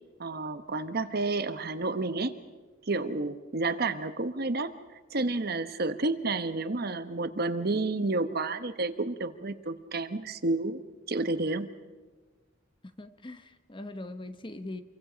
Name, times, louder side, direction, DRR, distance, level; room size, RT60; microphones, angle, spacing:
voice 1, 0.2-2.3 2.9-4.7 5.1-10.8 11.1-11.7, right 3 dB, 50° right, 10 dB, 1.1 m, -30 dB
voice 2, 13.0-14.8, left 2 dB, 25° left, 10 dB, 1.0 m, -41 dB
27.5 x 23.5 x 5.1 m, 1.3 s
head